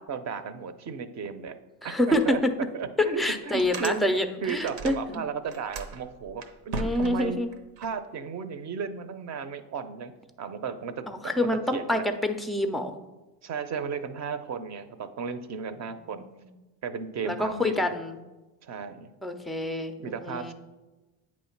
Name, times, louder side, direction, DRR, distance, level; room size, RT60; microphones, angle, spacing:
voice 1, 0.1-1.6 1.8-2.4 2.7-7.4 7.8-10.1 10.4-12.0 13.4-16.2 16.8-18.0 18.6-19.1 20.0-20.5, right 6 dB, 40° right, 11 dB, 0.6 m, -35 dB
voice 2, 1.8-2.4 3.2-5.2 6.7-7.5 11.1-12.9 17.2-18.2 19.2-20.5, left 1 dB, ahead, 7 dB, 0.3 m, -27 dB
sound 1, 2.2-2.3 2.8-2.9 3.3-5.2 5.4-7.9, right 3 dB, 80° right, 1.0 m, -37 dB
8.7 x 3.1 x 5.8 m, 1.1 s
cardioid pair, 115°, 44 cm